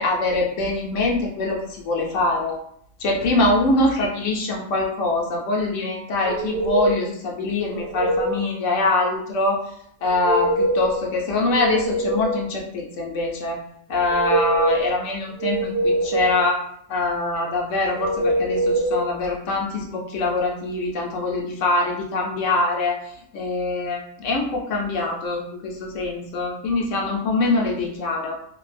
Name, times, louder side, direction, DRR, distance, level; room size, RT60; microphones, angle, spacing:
voice 1, 0.0-2.6 3.0-9.6 10.0-13.6 13.9-16.6 16.9-23.0 23.3-28.4, left 2 dB, 70° left, -1 dB, 0.9 m, -24 dB
sound 1, 6.2-7.1 7.6-8.4 10.0-11.0 11.4-12.5 13.9-14.9 15.4-16.4 18.0-19.0, right 1 dB, 65° right, 0.7 m, -23 dB
2.6 x 2.2 x 3.2 m, 0.69 s
omnidirectional pair, 1.4 m